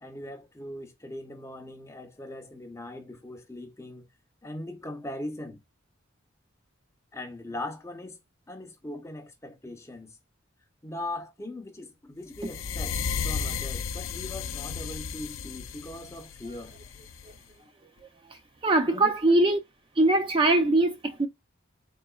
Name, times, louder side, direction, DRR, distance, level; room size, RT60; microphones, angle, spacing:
voice 1, 0.0-4.0 4.4-5.6 7.1-8.2 8.5-10.2 10.8-16.7 18.8-19.4, left 1 dB, 15° left, 0.6 m, -40 dB
sound 1, 12.3-17.4, left 5 dB, 75° left, 0.4 m, -34 dB
voice 2, 18.6-19.6 20.0-21.3, right 2 dB, 25° right, 0.5 m, -22 dB
3.9 x 3.8 x 2.3 m
head